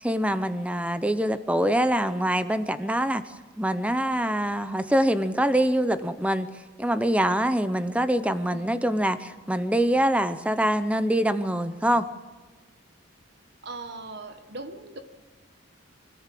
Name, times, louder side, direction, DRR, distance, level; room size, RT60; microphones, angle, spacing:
voice 1, 0.0-3.2 3.6-12.1, right 1 dB, 5° right, 12 dB, 0.7 m, -24 dB
voice 2, 13.6-15.0, right 2 dB, 50° right, 8 dB, 1.3 m, -39 dB
25.0 x 14.0 x 7.6 m, 1.4 s
head